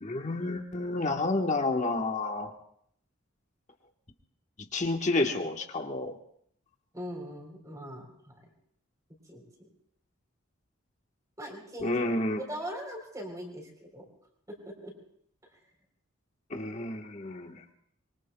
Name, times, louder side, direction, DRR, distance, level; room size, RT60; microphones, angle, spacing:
voice 1, 0.0-2.5 4.7-6.1 11.8-12.4 16.5-17.6, left 2 dB, 35° left, 4 dB, 1.3 m, -30 dB
voice 2, 6.9-8.5 9.3-9.7 11.4-12.1 12.4-14.1 14.6-14.9, equal, 15° right, 2 dB, 3.7 m, -41 dB
25.0 x 23.0 x 2.3 m, 0.68 s
head